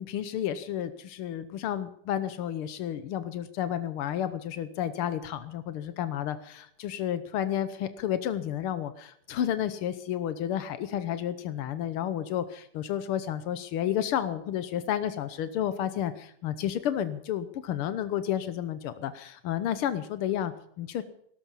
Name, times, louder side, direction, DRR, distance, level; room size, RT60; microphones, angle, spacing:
voice 1, 0.0-21.0, left 10 dB, 90° left, 12 dB, 1.8 m, -31 dB
17.5 x 13.0 x 5.5 m, 0.69 s
omnidirectional pair, 2.3 m